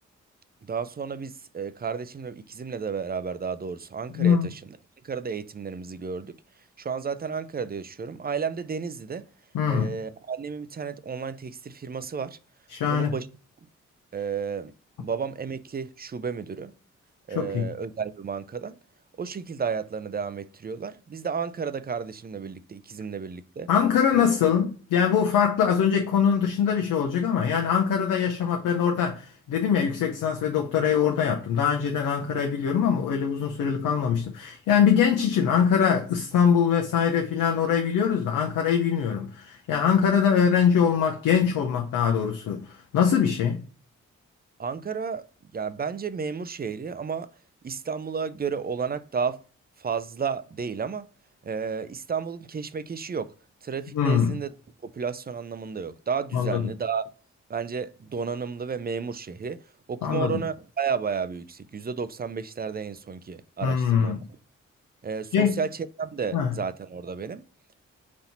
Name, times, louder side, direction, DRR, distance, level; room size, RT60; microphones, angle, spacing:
voice 1, 0.6-4.6 5.0-6.4 6.8-9.3 9.7-12.4 12.9-13.3 14.1-14.7 15.0-16.7 17.3-18.8 19.2-23.7 24.1-24.2 44.6-45.3 45.5-47.3 47.6-49.4 49.8-51.1 51.4-53.3 53.6-54.5 54.8-57.1 57.5-59.6 59.9-64.1 65.0-67.4, right 6 dB, 30° right, 0.5 m, -32 dB
voice 2, 4.1-4.5 9.5-9.9 12.7-13.1 17.3-17.7 23.7-43.6 53.9-54.3 56.3-56.6 60.0-60.4 63.6-64.2 65.3-65.6 66.3-66.5, left 7 dB, 80° left, 0.7 m, -23 dB
4.2 x 2.7 x 4.1 m
supercardioid pair, 40°, 32 cm